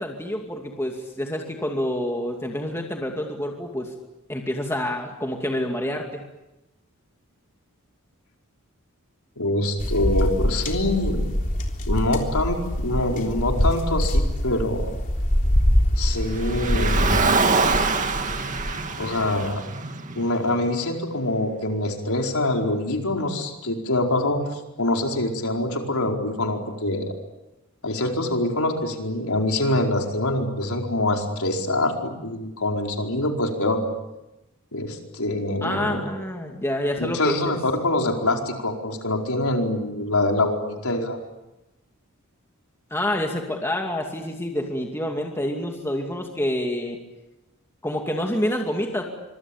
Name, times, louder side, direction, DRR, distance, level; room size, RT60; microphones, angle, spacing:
voice 1, 0.0-3.9 4.3-6.3 35.6-37.4 42.9-47.0 47.8-49.0, left 1 dB, 10° left, 1 dB, 2.4 m, -27 dB
voice 2, 9.4-11.3 11.9-14.9 16.0-17.3 19.0-19.6 20.2-27.1 27.8-33.8 34.7-36.1 37.0-41.2, left 1 dB, 90° left, 2 dB, 4.7 m, -25 dB
sound 1, 9.8-19.5, equal, 40° left, 3.6 m, -24 dB
Car, 16.3-20.7, right 4 dB, 35° right, 2.1 m, -25 dB
25.5 x 24.0 x 8.8 m, 0.98 s
head